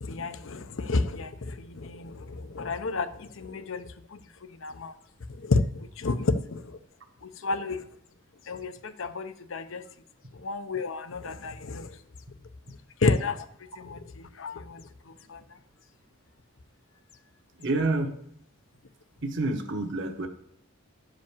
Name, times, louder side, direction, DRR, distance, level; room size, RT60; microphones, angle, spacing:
voice 1, 0.0-4.2 4.6-4.9 5.4-6.8 7.2-7.8 8.5-9.8 10.4-11.9 13.0-13.4 13.8-14.8 15.3-15.4, left 3 dB, 65° left, 10 dB, 0.7 m, -30 dB
voice 2, 17.6-18.2 19.2-20.3, right 2 dB, 55° right, 4 dB, 1.2 m, -28 dB
10.5 x 5.1 x 7.2 m, 0.70 s
head